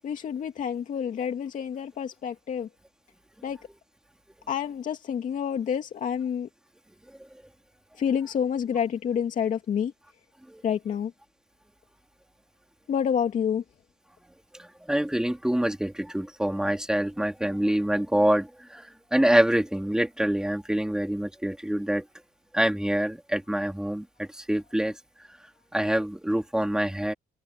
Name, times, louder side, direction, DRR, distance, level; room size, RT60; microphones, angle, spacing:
voice 1, 0.0-2.7 3.4-3.6 4.5-6.5 8.0-9.9 10.6-11.1 12.9-13.6, left 8 dB, 50° left, 2.4 m, -28 dB
voice 2, 14.9-18.5 18.7-18.8 19.1-22.0 22.5-24.0 24.5-24.9 25.7-27.1, right 1 dB, 5° right, 3.2 m, -25 dB
cardioid pair, 110°, 17 cm